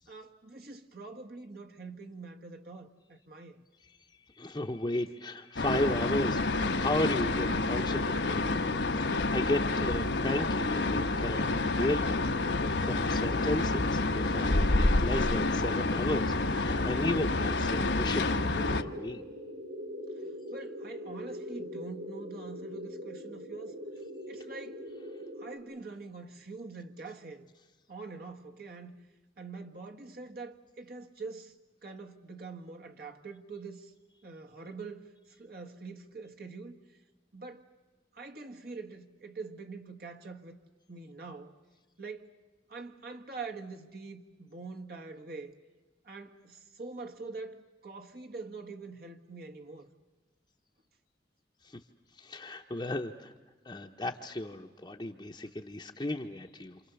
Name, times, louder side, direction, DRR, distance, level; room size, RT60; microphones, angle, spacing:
voice 1, 0.1-3.6 20.2-23.8 24.3-24.8 25.4-27.4 27.9-29.0 29.4-31.5 31.8-33.9 34.2-36.8 37.3-37.7 38.1-40.6 40.9-41.6 42.0-42.3 42.7-45.6 46.0-49.9, right 4 dB, 55° right, 1.6 m, -44 dB
voice 2, 4.1-19.2 51.6-51.8 52.1-53.3 53.6-56.8, left 1 dB, 25° left, 0.8 m, -35 dB
sound 1, 5.6-18.8, left 2 dB, 85° left, 1.1 m, -28 dB
sound 2, 6.6-25.6, equal, 75° right, 6.9 m, -43 dB
28.5 x 27.5 x 7.0 m
head